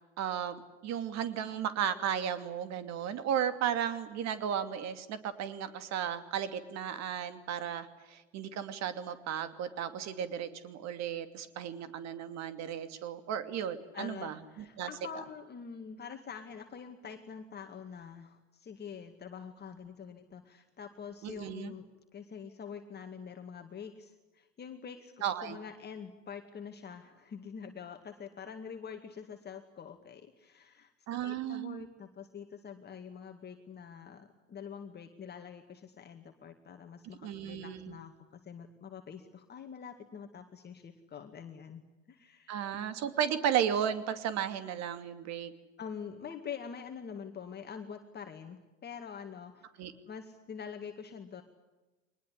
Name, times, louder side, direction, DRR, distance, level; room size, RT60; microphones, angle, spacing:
voice 1, 0.2-14.9 21.2-21.7 25.2-25.6 31.1-31.8 37.2-38.0 42.5-45.5 49.8-49.9, right 9 dB, 45° right, 10 dB, 2.7 m, -34 dB
voice 2, 13.9-21.9 22.1-25.1 25.4-30.9 31.2-41.8 42.1-42.7 45.8-49.6 50.1-51.4, left 7 dB, 25° left, 5 dB, 2.2 m, -45 dB
23.5 x 20.5 x 9.9 m, 1.1 s
hypercardioid pair, 90°, 37 cm